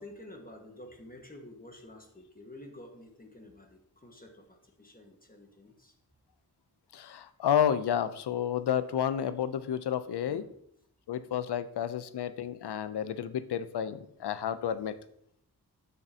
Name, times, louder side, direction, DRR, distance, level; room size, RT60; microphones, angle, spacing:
voice 1, 0.0-5.9 10.3-10.5 11.7-11.8, left 1 dB, 20° left, 1 dB, 1.5 m, -50 dB
voice 2, 6.9-10.5 11.1-15.0, left 9 dB, 80° left, 13 dB, 0.6 m, -31 dB
8.9 x 6.4 x 2.8 m, 0.71 s
cardioid pair, 50°, 39 cm